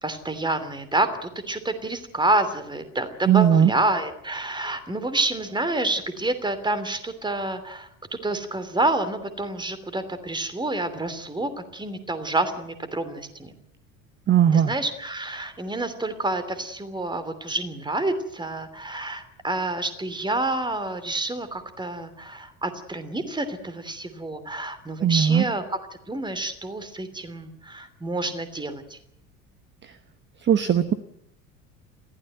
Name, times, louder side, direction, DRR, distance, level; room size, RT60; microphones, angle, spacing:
voice 1, 0.0-7.9 8.2-13.5 14.5-25.8 26.1-29.0, right 2 dB, 10° right, 11 dB, 2.9 m, -28 dB
voice 2, 3.3-3.7 14.3-14.7 25.0-25.4 30.4-30.9, right 9 dB, 25° right, 14 dB, 1.1 m, -18 dB
21.5 x 15.5 x 9.3 m, 0.75 s
figure-of-eight pair, 70°, 42 cm